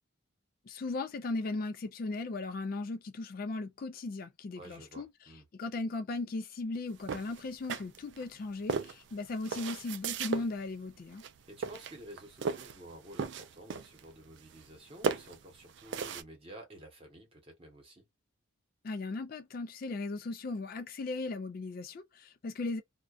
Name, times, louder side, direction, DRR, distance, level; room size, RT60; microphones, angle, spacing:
voice 1, 0.7-5.1 5.5-11.2 18.8-22.8, left 3 dB, 45° left, 0.3 m, -37 dB
voice 2, 4.6-5.5 10.3-10.5 11.5-18.0, right 1 dB, 25° right, 1.0 m, -51 dB
sound 1, 7.0-8.3 8.7-10.5 11.1-11.4 11.6-12.8 13.1-14.0 14.4-14.8 15.0-16.2, right 6 dB, 60° right, 0.3 m, -35 dB
2.3 x 2.2 x 2.4 m
head